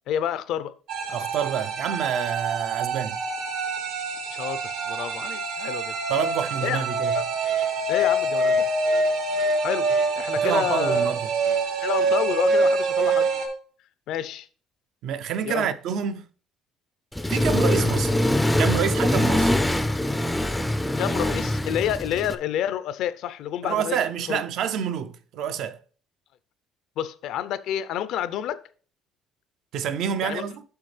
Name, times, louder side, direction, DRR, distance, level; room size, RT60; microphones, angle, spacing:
voice 1, 0.1-0.7 4.3-5.9 6.6-6.8 7.1-7.2 7.9-8.7 9.6-9.9 10.2-11.1 11.8-13.3 14.1-14.5 15.5-15.7 21.0-24.0 24.3-24.4 27.0-28.6 30.2-30.4, left 10 dB, 70° left, 0.5 m, -29 dB
sound 1, 0.9-13.5, right 3 dB, 80° right, 1.8 m, -25 dB
voice 2, 1.1-3.2 6.1-7.2 10.4-11.2 15.0-16.3 17.3-18.2 18.6-19.6 23.6-25.8 29.7-30.6, right 8 dB, 60° right, 0.5 m, -28 dB
Accelerating revving vroom, 17.1-22.3, left 1 dB, 5° left, 0.4 m, -23 dB
8.0 x 5.7 x 3.3 m
cardioid pair, 140°, 0 cm